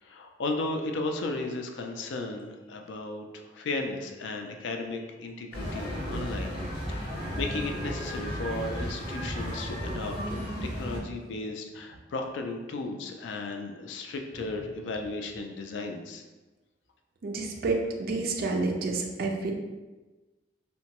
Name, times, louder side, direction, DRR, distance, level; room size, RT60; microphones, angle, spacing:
voice 1, 0.0-6.6 6.9-10.4 10.6-16.2, left 2 dB, 70° left, 3 dB, 0.4 m, -35 dB
sound 1, 5.5-11.0, equal, 30° right, 0.7 m, -34 dB
voice 2, 17.2-19.5, right 3 dB, 55° right, 3 dB, 0.4 m, -29 dB
2.9 x 2.2 x 2.8 m, 1.2 s
head